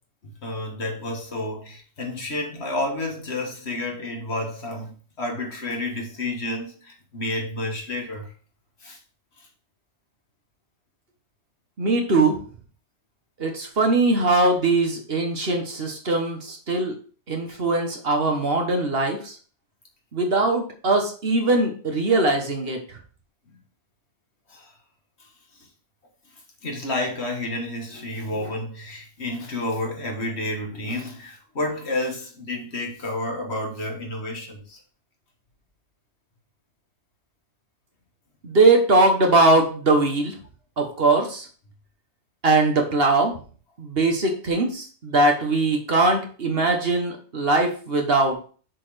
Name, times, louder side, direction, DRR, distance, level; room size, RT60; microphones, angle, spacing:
voice 1, 0.2-4.9 5.2-8.3 8.8-9.0 9.4-9.5 17.5-17.6 23.5-23.6 24.5-24.7 25.2-25.3 25.6-25.7 26.6-34.8, left 1 dB, 65° left, 1.9 m, -30 dB
voice 2, 11.8-12.4 13.4-16.9 17.3-19.4 20.1-22.8 38.4-40.3 40.8-41.4 42.4-43.3 43.8-48.4, right 2 dB, 55° right, 1.5 m, -21 dB
6.7 x 4.2 x 5.0 m
omnidirectional pair, 1.2 m